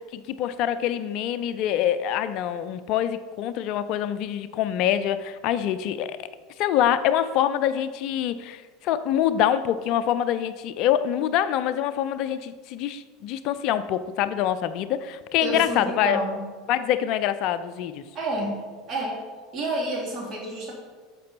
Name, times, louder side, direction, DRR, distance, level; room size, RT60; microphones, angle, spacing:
voice 1, 0.0-6.3 6.6-16.2 16.7-18.0, left 10 dB, 50° left, 12 dB, 0.4 m, -25 dB
voice 2, 15.4-16.4 18.1-18.6 18.9-19.2 19.5-20.7, right 2 dB, 35° right, -1 dB, 2.7 m, -29 dB
10.0 x 6.8 x 4.1 m, 1.4 s
figure-of-eight pair, 75°, 0 cm